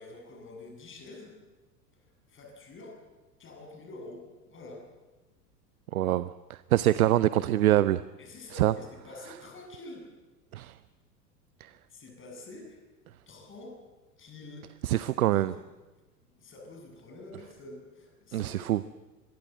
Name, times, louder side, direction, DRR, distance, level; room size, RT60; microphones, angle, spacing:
voice 1, 0.0-1.3 1.9-3.0 3.4-4.8 8.2-10.1 11.9-12.8 13.3-13.7 14.2-15.0 15.3-15.6 16.4-18.9, left 2 dB, 25° left, 7.8 m, -47 dB
voice 2, 5.9-8.0 8.6-8.7 10.5-10.8 11.6-11.7 14.8-15.5 18.3-18.8, right 13 dB, 60° right, 0.8 m, -25 dB
25.0 x 22.0 x 7.8 m
figure-of-eight pair, 85°, 48 cm